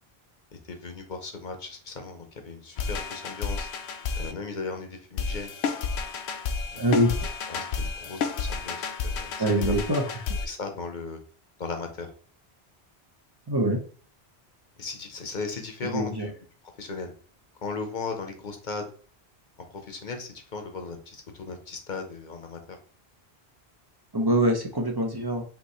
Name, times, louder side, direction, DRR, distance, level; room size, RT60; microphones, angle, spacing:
voice 1, 0.7-3.7 4.1-5.5 6.7-7.0 7.5-9.3 9.6-9.7 10.4-11.2 11.6-12.1 14.8-16.3 16.8-17.1 17.6-18.9 19.7-22.8, left 4 dB, 50° left, 5 dB, 1.0 m, -37 dB
sound 1, 2.8-4.3 5.2-10.5, left 5 dB, 90° left, 0.8 m, -31 dB
voice 2, 6.8-7.2 9.4-10.0 13.5-13.8 15.8-16.3 24.1-25.4, right 1 dB, 25° right, 2 dB, 0.7 m, -24 dB
5.5 x 2.9 x 3.0 m, 0.42 s
omnidirectional pair, 1.1 m